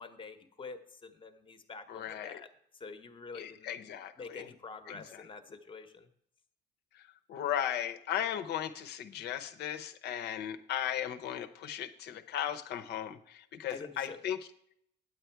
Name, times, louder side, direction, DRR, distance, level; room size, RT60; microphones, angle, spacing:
voice 1, 0.0-2.5 2.7-3.8 4.2-6.1 13.7-14.2, left 4 dB, 25° left, 8 dB, 1.0 m, -47 dB
voice 2, 1.9-2.4 3.3-4.5 4.9-5.2 6.9-14.4, left 10 dB, 65° left, 11 dB, 0.9 m, -37 dB
9.5 x 8.1 x 4.6 m, 0.71 s
cardioid pair, 125°, 18 cm